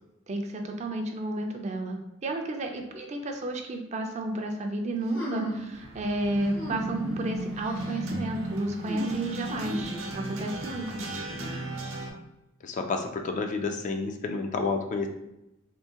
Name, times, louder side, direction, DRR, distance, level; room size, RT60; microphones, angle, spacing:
voice 1, 0.3-11.0, right 1 dB, 35° right, 3 dB, 0.4 m, -32 dB
sound 1, 5.1-5.7 6.5-7.2 7.6-8.0 8.8-10.0, right 1 dB, 70° left, 1.3 m, -35 dB
sound 2, 5.7-12.1, right 2 dB, 75° right, 0.7 m, -39 dB
sound 3, 6.2-11.9, right 1 dB, 85° left, 1.3 m, -37 dB
voice 2, 11.1-11.6 12.6-15.1, left 4 dB, 35° left, 4 dB, 0.3 m, -31 dB
3.6 x 2.5 x 2.8 m, 0.91 s
head